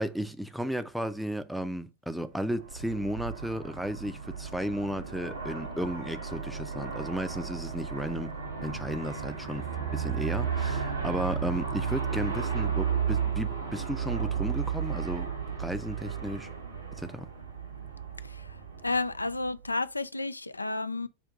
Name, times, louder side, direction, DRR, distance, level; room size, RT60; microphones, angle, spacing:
voice 1, 0.0-8.3 8.6-15.3 15.6-16.5 17.0-17.3, equal, ahead, 0.5 m, -34 dB
Aircraft, 2.4-19.7, right 6 dB, 80° right, 1.2 m, -34 dB
voice 2, 18.2-18.6 18.8-21.1, left 3 dB, 80° left, 0.3 m, -31 dB
5.2 x 2.6 x 3.5 m
figure-of-eight pair, 90°, 0 cm